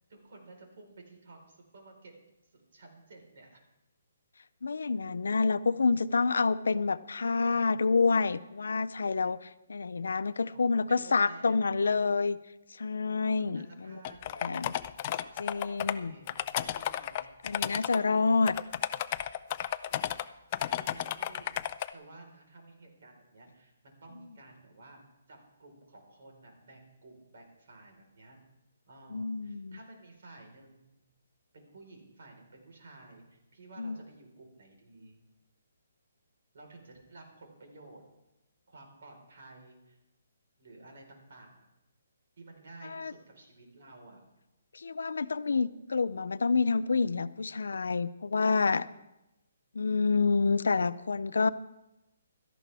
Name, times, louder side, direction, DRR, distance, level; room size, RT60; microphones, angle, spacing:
voice 1, 0.0-2.1 2.4-3.6 4.9-5.1 10.5-12.0 13.4-14.6 15.7-17.3 20.7-21.5 21.9-25.0 25.3-28.4 28.9-31.0 31.5-35.2 36.5-38.0 38.7-40.0 40.6-41.6 42.4-44.2, right 2 dB, 60° right, 1 dB, 4.3 m, -53 dB
voice 2, 4.6-12.4 12.8-14.0 14.4-14.7 15.4-16.1 17.4-18.6 29.1-29.8 33.8-34.0 42.8-43.1 44.7-48.9 49.7-51.5, left 4 dB, 90° left, 14 dB, 0.6 m, -28 dB
sound 1, 14.0-15.9 16.3-18.0 18.5-20.2 20.5-21.9, left 12 dB, 30° left, 0.4 m, -33 dB
17.0 x 13.0 x 3.5 m, 0.94 s
hypercardioid pair, 165°, 0 cm